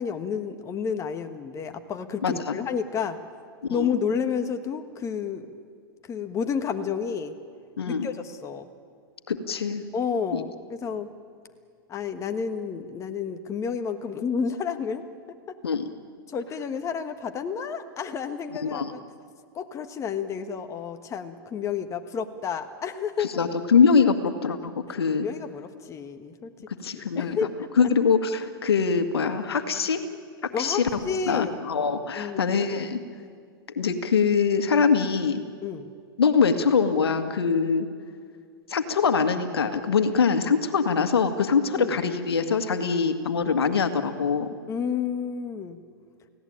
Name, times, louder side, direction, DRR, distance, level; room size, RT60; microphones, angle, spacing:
voice 1, 0.0-3.2 3.7-5.5 6.0-7.4 7.9-8.7 9.9-11.1 11.9-15.1 15.5-15.6 16.3-19.0 19.5-23.4 25.2-26.5 26.9-27.9 30.5-31.6 32.1-32.5 35.6-35.9 41.7-42.0 44.7-45.8, left 6 dB, 25° left, 8 dB, 1.5 m, -30 dB
voice 2, 2.2-2.6 3.7-3.9 7.8-8.1 9.3-9.8 10.3-10.4 15.6-15.9 18.6-18.9 23.2-25.3 26.8-27.4 27.8-30.0 30.6-31.0 31.3-33.0 33.8-35.4 36.2-37.9 38.7-44.5, left 5 dB, 85° left, 8 dB, 2.0 m, -23 dB
29.5 x 17.5 x 8.8 m, 2.1 s
hypercardioid pair, 120°, 13 cm